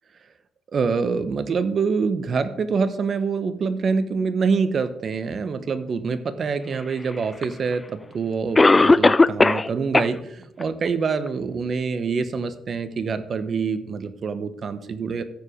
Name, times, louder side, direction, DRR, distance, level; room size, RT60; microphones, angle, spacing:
voice 1, 0.7-15.2, right 5 dB, 50° right, 11 dB, 1.0 m, -25 dB
Cough, 7.4-7.5 8.6-9.7 9.9-10.1 10.6-10.7 11.3-11.4, left 3 dB, 20° left, 0.4 m, -15 dB
14.5 x 5.0 x 5.1 m, 0.80 s
cardioid pair, 90°, 0 cm